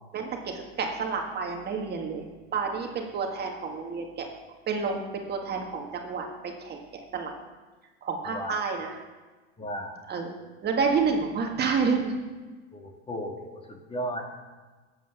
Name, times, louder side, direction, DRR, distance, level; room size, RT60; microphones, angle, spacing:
voice 1, 0.1-4.3 4.7-6.8 7.1-7.3 8.0-8.9 10.1-10.3 10.6-12.1, right 5 dB, 30° right, 2 dB, 1.7 m, -29 dB
voice 2, 8.3-8.6 9.6-10.0 12.7-14.2, equal, 15° left, 2 dB, 1.9 m, -35 dB
13.0 x 7.8 x 5.9 m, 1.3 s
hypercardioid pair, 115°, 34 cm